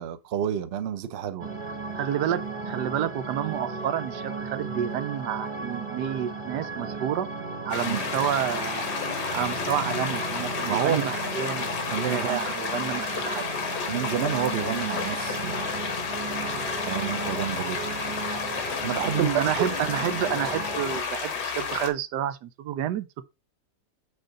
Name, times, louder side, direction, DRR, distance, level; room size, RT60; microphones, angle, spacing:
voice 1, 0.0-1.5 7.8-8.0 10.7-11.1 11.9-12.5 13.9-15.7 16.9-17.8 18.8-19.3 19.7-19.8, right 9 dB, 55° right, 0.7 m, -29 dB
sound 1, 1.4-21.0, right 3 dB, 20° right, 1.0 m, -35 dB
voice 2, 1.9-7.3 7.6-8.9 9.3-11.7 12.0-13.4 19.1-23.2, right 10 dB, 90° right, 1.3 m, -29 dB
sound 2, 7.7-21.9, left 5 dB, 80° left, 1.9 m, -31 dB
6.5 x 3.9 x 5.1 m
omnidirectional pair, 1.7 m